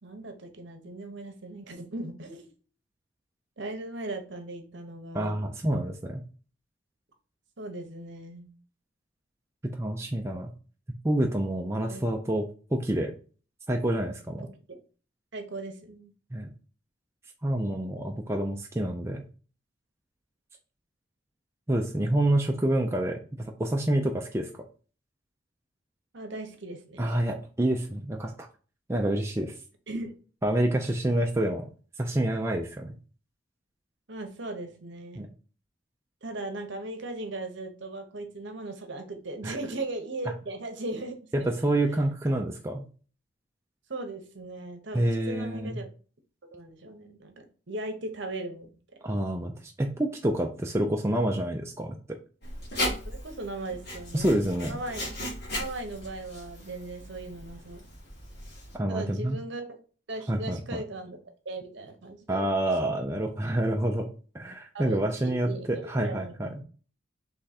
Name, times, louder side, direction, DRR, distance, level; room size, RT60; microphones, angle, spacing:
voice 1, 0.0-2.5 3.6-5.4 7.6-8.5 11.8-12.0 14.4-14.8 15.3-16.1 26.1-27.1 29.9-30.2 34.1-35.3 36.2-41.9 43.9-45.8 46.5-48.7 53.0-54.3 54.7-55.1 55.6-57.8 58.9-59.7 60.1-61.2 61.4-62.5 64.7-66.6, right 2 dB, 60° right, 6 dB, 0.8 m, -38 dB
voice 2, 5.1-6.2 9.6-10.5 11.0-12.4 12.7-13.1 13.7-14.5 16.3-16.5 17.4-19.2 21.7-24.5 27.0-28.3 28.9-29.5 30.4-31.7 32.0-32.9 35.2-35.3 39.4-39.5 41.3-42.8 44.9-45.8 49.0-52.0 54.1-54.8 58.7-59.4 60.3-60.8 62.3-64.1 64.3-66.5, right 1 dB, 15° right, 2 dB, 0.4 m, -27 dB
Writing, 52.4-58.8, left 1 dB, 50° left, 1.6 m, -37 dB
3.6 x 3.2 x 4.2 m, 0.39 s
head